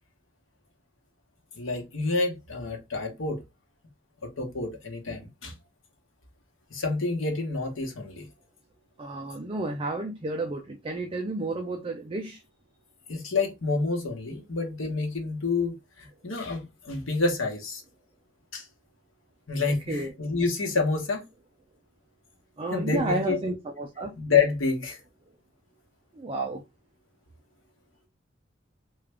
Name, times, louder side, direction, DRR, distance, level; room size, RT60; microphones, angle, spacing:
voice 1, 1.5-3.4 4.2-5.5 6.7-8.3 13.1-17.8 18.5-18.7 19.5-21.2 22.7-23.4 24.2-25.0, left 4 dB, 90° left, 1.1 m, -28 dB
voice 2, 9.0-12.4 19.9-20.1 22.6-24.2 26.2-26.6, right 2 dB, 30° right, 0.4 m, -31 dB
3.3 x 2.4 x 3.3 m
head